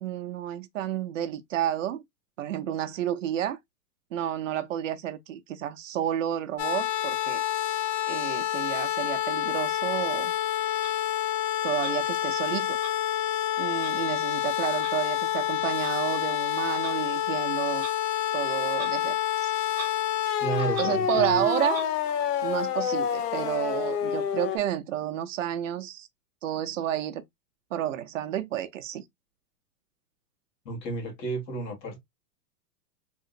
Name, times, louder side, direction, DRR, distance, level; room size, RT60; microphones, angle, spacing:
voice 1, 0.0-2.0 2.4-3.6 4.1-7.4 8.1-10.3 11.6-12.8 13.6-17.9 18.3-19.5 20.8-21.8 22.4-26.1 26.4-27.2 27.7-29.0, right 11 dB, 50° right, 0.5 m, -30 dB
sound 1, 6.6-24.6, left 10 dB, 65° left, 0.8 m, -28 dB
Clock, 10.8-10.9 11.8-11.9 12.8-12.9 13.8-13.9 14.8-14.9 15.8-15.9 16.8-16.9 17.8-17.9 18.7-18.9 19.2-19.3 19.7-19.9 20.4-21.3 21.7-21.9, right 4 dB, 5° right, 0.8 m, -40 dB
voice 2, 20.4-21.4 30.7-32.0, right 3 dB, 85° left, 2.1 m, -32 dB
3.5 x 2.8 x 2.4 m
supercardioid pair, 175°, 49 cm